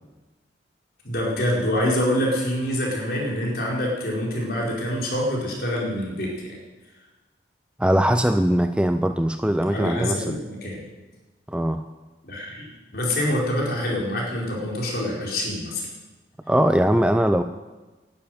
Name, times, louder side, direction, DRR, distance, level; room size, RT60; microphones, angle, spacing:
voice 1, 1.0-6.5 9.7-10.8 12.2-15.9, left 1 dB, 55° left, -3 dB, 4.8 m, -26 dB
voice 2, 7.8-10.4 11.5-11.8 16.5-17.4, equal, 5° right, 9 dB, 0.4 m, -21 dB
11.5 x 10.5 x 9.4 m, 1.2 s
head